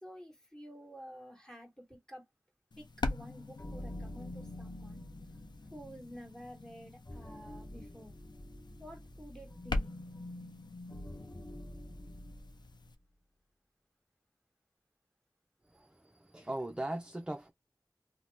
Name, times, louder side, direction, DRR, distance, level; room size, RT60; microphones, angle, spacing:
voice 1, 0.0-2.2 2.8-5.0 5.6-8.1 8.8-9.9, equal, 10° left, 1.3 m, -51 dB
sound 1, 2.7-13.0, left 2 dB, 80° left, 0.4 m, -43 dB
sound 2, 3.6-12.8, left 1 dB, 35° left, 0.6 m, -47 dB
voice 2, 15.6-17.5, right 1 dB, 10° right, 0.5 m, -39 dB
2.8 x 2.1 x 3.3 m
wide cardioid pair, 40°, 7 cm